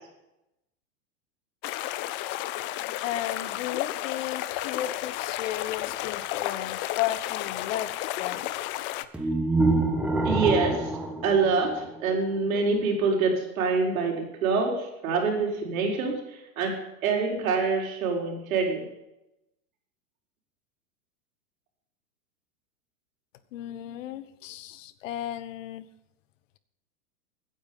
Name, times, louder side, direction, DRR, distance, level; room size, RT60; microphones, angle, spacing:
sound 1, 1.6-9.0, left 15 dB, 30° left, 0.5 m, -32 dB
voice 1, 3.0-8.4 23.5-25.8, left 12 dB, 60° left, 14 dB, 1.2 m, -34 dB
sound 2, 9.1-12.3, right 2 dB, 5° right, 1.2 m, -26 dB
voice 2, 10.2-10.9 11.2-16.7 17.0-18.8, right 4 dB, 75° right, 1 dB, 4.8 m, -26 dB
16.0 x 9.7 x 5.5 m, 0.90 s
hypercardioid pair, 135°, 42 cm